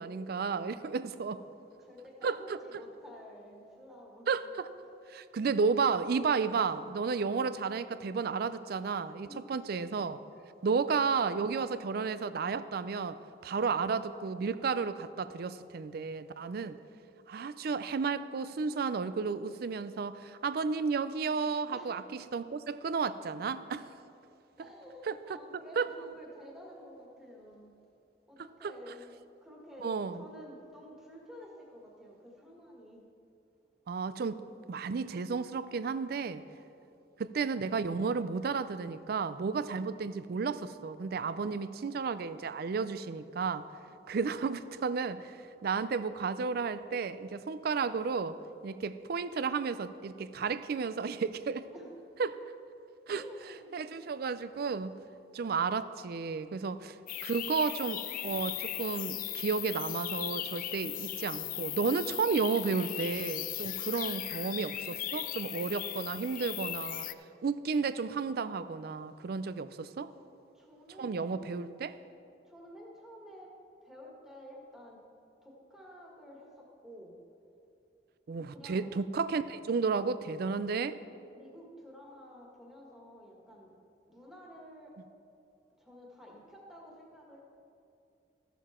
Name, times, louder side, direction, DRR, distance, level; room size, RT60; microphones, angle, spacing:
voice 1, 0.0-1.4 2.2-2.6 4.3-4.7 5.1-10.2 10.6-13.2 13.4-16.8 17.3-23.9 25.1-25.2 25.8-25.9 28.4-28.7 29.8-30.2 33.9-34.4 34.7-36.4 37.2-43.6 44.1-48.4 48.6-51.7 52.2-52.4 53.1-53.2 53.7-54.9 55.3-57.0 57.2-67.1 67.4-70.1 71.0-71.9 78.3-81.0, right 5 dB, 60° right, 14 dB, 0.4 m, -32 dB
voice 2, 1.8-4.3 9.3-9.4 21.7-22.0 24.6-27.7 28.3-29.1 29.4-33.0 36.4-36.5 36.9-37.0 41.2-41.6 43.8-44.1 51.7-51.9 53.1-53.9 70.5-71.7 72.4-73.5 73.8-75.0 75.4-77.1 78.5-78.9 81.3-83.7 84.1-85.0 85.8-87.4, equal, ahead, -3 dB, 1.7 m, -51 dB
sound 1, 57.1-67.1, left 14 dB, 50° left, 0.3 m, -38 dB
14.0 x 7.1 x 4.3 m, 2.6 s
head